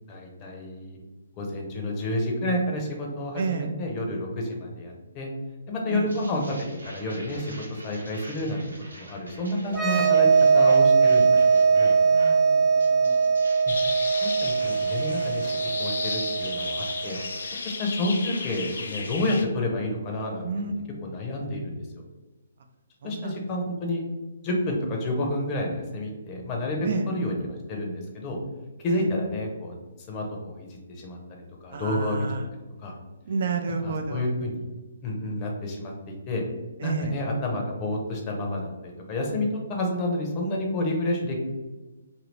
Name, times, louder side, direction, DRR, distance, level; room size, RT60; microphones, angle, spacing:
voice 1, 0.1-1.0 1.4-5.3 5.7-6.6 6.8-7.5 7.8-8.6 8.9-10.3 10.5-11.9 13.6-13.8 14.2-17.2 17.6-20.8 21.0-22.0 23.0-24.0 24.4-28.4 28.8-29.8 30.1-32.3 32.8-32.9 33.8-34.7 35.0-36.4 36.8-41.4, left 1 dB, 25° left, 0 dB, 0.7 m, -29 dB
voice 2, 3.3-3.7 5.9-6.1 12.0-13.3 20.4-20.9 23.0-23.4 26.8-27.1 28.9-29.1 31.7-32.5 33.2-34.3 36.8-37.2, right 4 dB, 50° right, 5 dB, 0.4 m, -31 dB
sound 1, 6.1-12.4 12.8-19.4, right 1 dB, 90° right, 0.9 m, -46 dB
sound 2, 9.7-17.2, right 5 dB, 15° right, 0.7 m, -21 dB
sound 3, 13.7-19.4, left 4 dB, 65° left, 0.4 m, -34 dB
2.7 x 2.7 x 3.3 m, 1.2 s
figure-of-eight pair, 135°, 0 cm